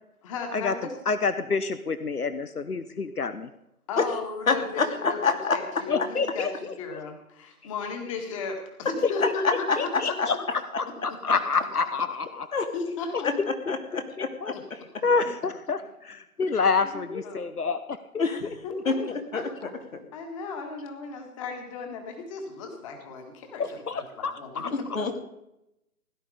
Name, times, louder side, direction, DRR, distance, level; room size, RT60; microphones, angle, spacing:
voice 1, 0.2-0.9 3.9-5.2 5.5-10.2 11.1-11.2 12.7-13.3 16.8-17.4 18.6-19.0 19.3-19.7 20.1-25.2, left 4 dB, 20° left, 4 dB, 1.9 m, -35 dB
voice 2, 1.1-3.5 5.9-7.0 9.0-9.1 9.8-12.5 13.1-19.1 23.6-24.7, left 4 dB, 90° left, 12 dB, 1.1 m, -29 dB
voice 3, 4.5-5.6 9.7-9.8 10.2-10.3 12.5-12.7 13.2-13.3 13.7-14.0 17.1-17.2 18.2-18.5 18.9-19.5 24.9-25.2, left 4 dB, 65° left, 5 dB, 2.7 m, -26 dB
17.0 x 11.0 x 5.1 m, 0.84 s
figure-of-eight pair, 150°, 44 cm